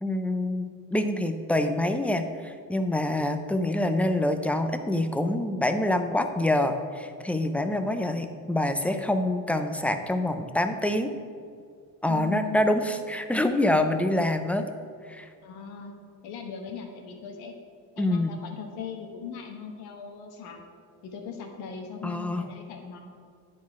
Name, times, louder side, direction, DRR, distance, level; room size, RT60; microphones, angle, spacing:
voice 1, 0.0-11.1 12.0-14.7 15.1-15.3 18.0-18.3 22.0-22.5, left 1 dB, 5° left, 8 dB, 0.5 m, -26 dB
voice 2, 12.1-12.7 15.4-15.9 16.2-17.5 18.0-20.6 21.0-23.0, left 6 dB, 85° left, 3 dB, 1.2 m, -39 dB
9.7 x 4.2 x 4.8 m, 2.2 s
supercardioid pair, 80°, 38 cm